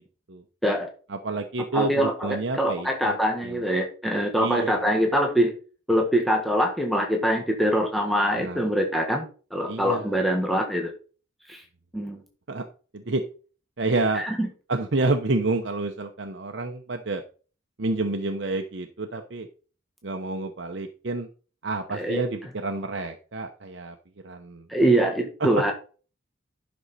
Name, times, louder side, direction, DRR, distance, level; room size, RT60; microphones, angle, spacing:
voice 1, 1.1-3.2 3.4-3.6 4.4-4.8 8.4-8.7 9.7-10.2 12.5-12.7 12.9-13.2 13.8-14.2 14.7-17.2 17.8-19.5 20.0-21.3 21.6-24.0 24.2-24.7 25.4-25.5, right 3 dB, 60° right, 5 dB, 0.8 m, -29 dB
voice 2, 1.7-5.5 5.9-10.9 11.5-11.6 11.9-12.2 14.1-14.5 21.9-22.2 24.7-25.7, equal, ahead, 1 dB, 1.4 m, -24 dB
11.5 x 6.2 x 4.1 m, 0.38 s
head